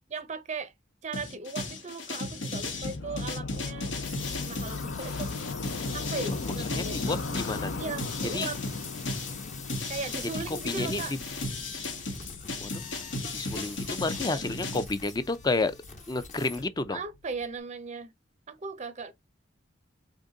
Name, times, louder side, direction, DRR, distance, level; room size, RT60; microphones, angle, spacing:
voice 1, 0.1-0.7 1.0-3.9 4.4-5.4 5.9-7.0 7.8-8.6 9.9-11.2 14.3-14.4 16.9-18.1 18.5-19.1, right 4 dB, 35° right, 0.5 m, -37 dB
sound 1, 1.1-7.6 8.0-14.8, left 2 dB, 85° left, 1.3 m, -35 dB
sound 2, 2.7-17.6, left 3 dB, 65° left, 0.6 m, -39 dB
sound 3, 4.0-16.7, left 5 dB, 40° left, 1.2 m, -45 dB
voice 2, 6.4-7.8 8.3-8.5 10.6-11.2 12.6-12.7 13.3-15.7 16.1-17.0, left 3 dB, 20° left, 0.5 m, -31 dB
3.9 x 3.5 x 3.8 m
head